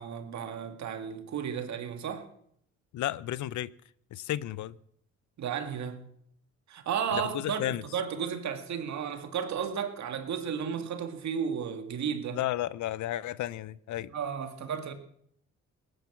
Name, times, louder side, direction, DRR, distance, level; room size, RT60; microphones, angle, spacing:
voice 1, 0.0-2.3 5.4-6.0 6.7-12.4 14.1-14.9, right 7 dB, 65° right, 2.2 m, -33 dB
voice 2, 2.9-3.7 4.1-4.8 7.1-7.8 12.3-14.1, left 13 dB, 75° left, 0.7 m, -33 dB
18.5 x 10.5 x 7.4 m
cardioid pair, 90°, 30 cm